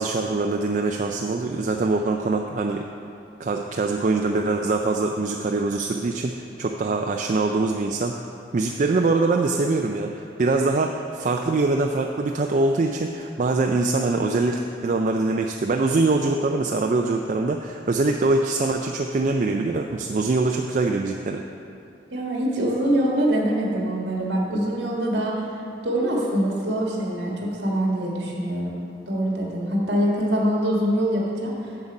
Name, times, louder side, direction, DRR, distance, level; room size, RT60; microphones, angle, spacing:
voice 1, 0.0-2.8 3.4-8.2 8.5-21.4, right 3 dB, 45° right, 3 dB, 0.4 m, -23 dB
voice 2, 22.1-25.4 25.8-28.7 29.1-31.6, equal, 65° right, -2 dB, 1.7 m, -24 dB
7.7 x 7.2 x 5.3 m, 2.5 s
head